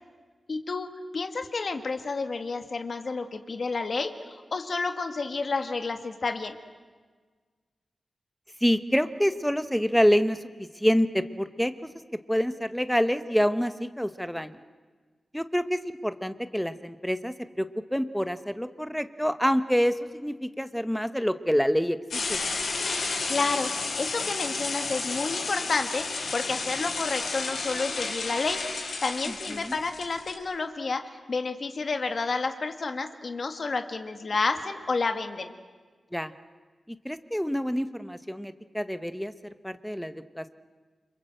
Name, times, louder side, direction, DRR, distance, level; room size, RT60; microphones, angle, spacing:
voice 1, 0.5-0.9 1.1-6.6 23.3-28.6 29.0-35.5, left 4 dB, 45° left, 7 dB, 1.8 m, -30 dB
voice 2, 8.6-10.4 10.8-11.7 12.3-14.6 15.3-17.7 17.9-22.4 29.5-29.8 36.1-36.3 37.0-39.3 39.6-40.5, equal, ahead, 10 dB, 1.0 m, -27 dB
sound 1, 22.1-30.3, left 4 dB, 80° left, 5.6 m, -32 dB
29.0 x 26.0 x 7.8 m, 1.4 s
wide cardioid pair, 180°, 0 cm